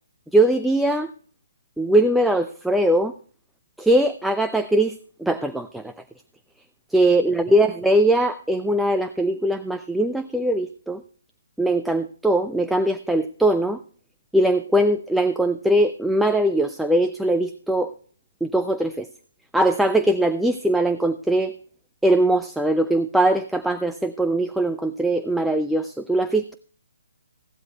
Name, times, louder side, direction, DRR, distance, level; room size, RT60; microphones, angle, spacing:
voice 1, 0.3-1.1 1.8-3.1 3.8-5.9 6.9-11.0 11.6-13.8 14.3-17.9 18.4-19.1 19.5-21.6 22.0-26.5, right 1 dB, ahead, 7 dB, 0.5 m, -21 dB
16.5 x 12.0 x 2.3 m, 0.43 s
figure-of-eight pair, 135°, 0 cm